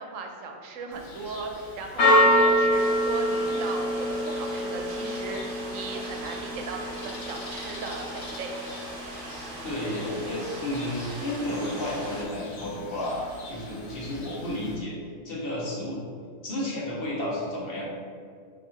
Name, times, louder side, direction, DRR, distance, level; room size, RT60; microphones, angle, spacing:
voice 1, 0.0-1.5 1.8-8.5, right 3 dB, 80° right, 3 dB, 1.0 m, -37 dB
Church bell, 0.9-14.7, equal, 65° left, 1.0 m, -28 dB
sound 1, 2.7-12.2, right 2 dB, 50° right, 0.8 m, -40 dB
voice 2, 9.6-15.0 15.2-16.0 16.4-17.9, left 1 dB, 50° left, -5 dB, 1.1 m, -32 dB
5.9 x 3.0 x 2.8 m, 2.1 s
omnidirectional pair, 1.3 m